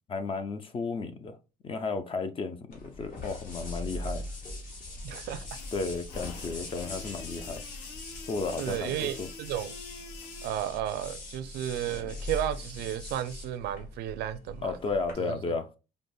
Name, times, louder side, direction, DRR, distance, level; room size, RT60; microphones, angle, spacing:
voice 1, 0.1-1.4 1.6-4.2 5.7-7.6 8.2-9.3 14.6-15.7, left 4 dB, 30° left, 0.4 m, -33 dB
sound 1, 2.7-15.1, left 2 dB, 50° left, 1.2 m, -41 dB
voice 2, 5.0-5.5 8.6-9.7 10.4-14.7 15.2-15.4, right 11 dB, 75° right, 0.4 m, -33 dB
sound 2, 5.5-10.5, left 5 dB, 90° left, 0.5 m, -47 dB
5.0 x 2.0 x 2.3 m
cardioid pair, 110°, 17 cm